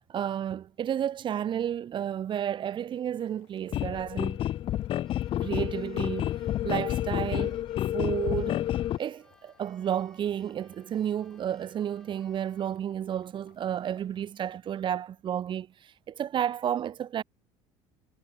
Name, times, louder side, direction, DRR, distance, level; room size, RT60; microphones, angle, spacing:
voice 1, 0.1-4.4 5.4-6.3 6.6-7.6 7.9-8.6 9.0-15.7 16.1-17.2, right 9 dB, 35° right, 0.6 m, -31 dB
Boiling, 3.0-14.6, left 26 dB, 75° left, 6.1 m, -65 dB
sound 1, 3.7-9.0, left 12 dB, 40° left, 0.4 m, -29 dB
Keyboard (musical), 5.0-12.8, left 1 dB, 5° left, 4.0 m, -64 dB
supercardioid pair, 105°, 13 cm